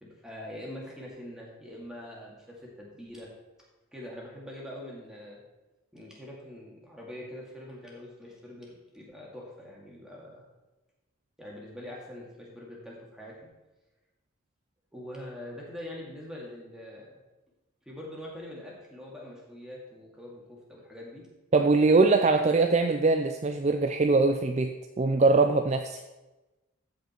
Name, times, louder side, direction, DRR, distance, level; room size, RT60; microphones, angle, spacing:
voice 1, 0.0-3.3 3.9-5.4 5.9-10.4 11.4-13.5 14.9-17.2 17.9-21.3, left 1 dB, 5° right, -3 dB, 2.2 m, -43 dB
voice 2, 21.5-26.0, right 3 dB, 35° right, 5 dB, 0.4 m, -22 dB
14.5 x 5.1 x 4.5 m, 1.1 s
head